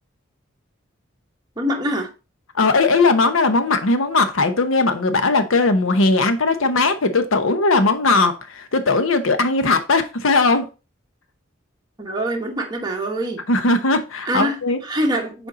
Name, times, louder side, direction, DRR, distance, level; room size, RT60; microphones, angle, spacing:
voice 1, 1.6-2.1 12.0-13.4 14.2-15.5, right 1 dB, 20° right, 1.2 m, -24 dB
voice 2, 2.5-10.7 13.5-14.8, left 3 dB, 85° left, 0.9 m, -18 dB
6.7 x 4.4 x 3.8 m
head